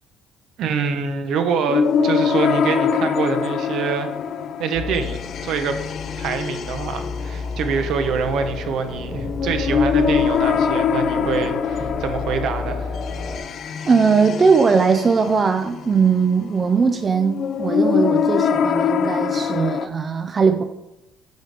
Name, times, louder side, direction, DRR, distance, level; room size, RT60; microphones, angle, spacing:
voice 1, 0.6-4.1 4.6-5.8 6.2-12.9, right 6 dB, 65° right, 8 dB, 0.8 m, -25 dB
sound 1, 1.7-19.9, left 6 dB, 50° left, 0.3 m, -24 dB
sound 2, 4.7-13.4, left 4 dB, 30° left, 1.2 m, -31 dB
voice 2, 13.9-20.6, right 5 dB, 30° right, 8 dB, 0.3 m, -19 dB
8.0 x 5.0 x 3.3 m, 0.91 s
cardioid pair, 125°, 0 cm